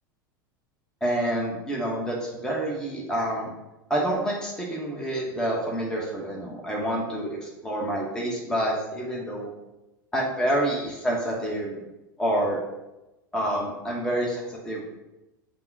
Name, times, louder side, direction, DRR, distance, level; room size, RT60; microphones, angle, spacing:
voice 1, 1.0-3.5 3.9-9.5 10.1-11.8 12.2-12.6 13.3-14.8, right 1 dB, 5° left, -3 dB, 1.0 m, -28 dB
5.7 x 2.2 x 3.9 m, 0.99 s
figure-of-eight pair, 85°, 12 cm